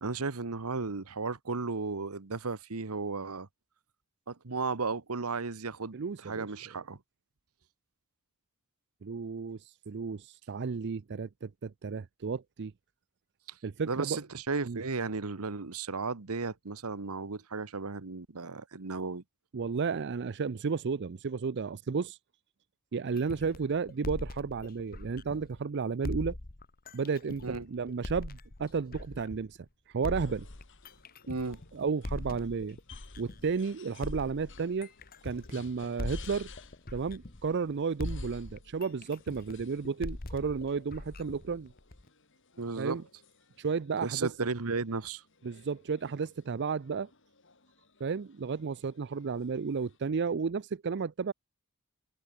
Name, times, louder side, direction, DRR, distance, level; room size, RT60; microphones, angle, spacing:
voice 1, 0.0-3.5 4.3-5.9 6.2-7.0 13.8-19.2 27.4-27.7 31.3-31.6 42.6-43.0 44.0-45.2, right 4 dB, 80° right, 1.2 m, -34 dB
voice 2, 5.9-6.5 9.0-12.7 13.6-14.2 14.6-14.8 19.5-22.2 22.9-26.4 26.9-29.6 29.9-30.5 31.7-32.8 33.2-34.9 35.2-36.5 36.9-41.7 42.8-43.0 43.6-44.3 45.4-47.1 48.0-51.3, right 5 dB, 55° right, 0.5 m, -33 dB
sound 1, 23.2-25.6 26.0-29.6 30.0-33.6 34.0-37.7 38.0-42.1, left 1 dB, 45° left, 1.5 m, -41 dB
sound 2, 30.1-50.0, left 8 dB, 60° left, 6.7 m, -59 dB
head